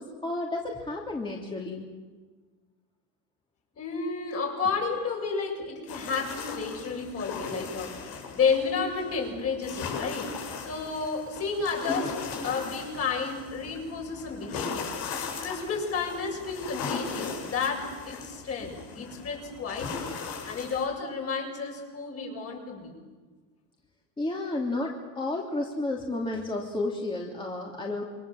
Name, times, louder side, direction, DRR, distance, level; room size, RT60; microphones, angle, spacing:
voice 1, 0.0-1.9 19.0-19.1 24.2-28.0, left 2 dB, 15° left, -1 dB, 2.9 m, -32 dB
voice 2, 3.8-10.3 10.6-12.2 12.4-14.9 15.4-20.0 20.4-22.9, left 5 dB, 40° left, 1 dB, 7.6 m, -31 dB
sound 1, 5.9-20.9, left 5 dB, 80° left, 7.6 m, -38 dB
28.0 x 25.0 x 7.7 m, 1.4 s
cardioid pair, 140°, 37 cm